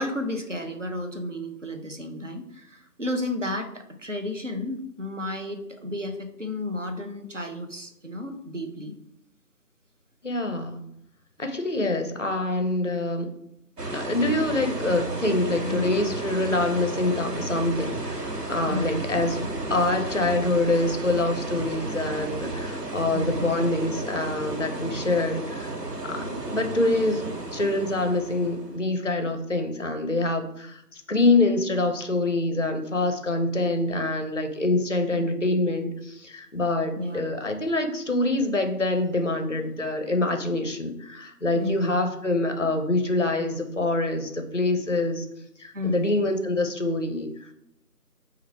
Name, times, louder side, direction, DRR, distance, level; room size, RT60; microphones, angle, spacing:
voice 1, 0.0-8.9 15.6-15.8 18.7-19.1 23.1-23.5 35.1-35.2 37.0-37.2 41.5-42.0 45.7-46.2, left 1 dB, 50° right, 5 dB, 0.6 m, -32 dB
voice 2, 10.2-10.8 11.4-13.3 13.9-25.8 26.0-45.3 45.6-47.5, left 2 dB, 50° left, 6 dB, 0.5 m, -25 dB
sound 1, 13.8-28.8, right 2 dB, 75° right, 1.2 m, -33 dB
4.4 x 2.4 x 4.5 m, 0.80 s
figure-of-eight pair, 175°, 48 cm